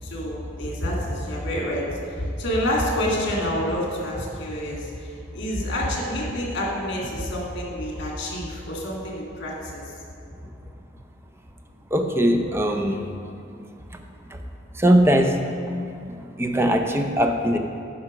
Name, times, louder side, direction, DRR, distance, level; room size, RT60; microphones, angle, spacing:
voice 1, 0.0-9.8, equal, 60° left, -2 dB, 2.0 m, -28 dB
voice 2, 11.9-13.0 14.3-14.4 14.8-15.4 16.1-17.6, equal, 15° right, 4 dB, 0.5 m, -20 dB
9.0 x 5.7 x 4.9 m, 2.7 s
head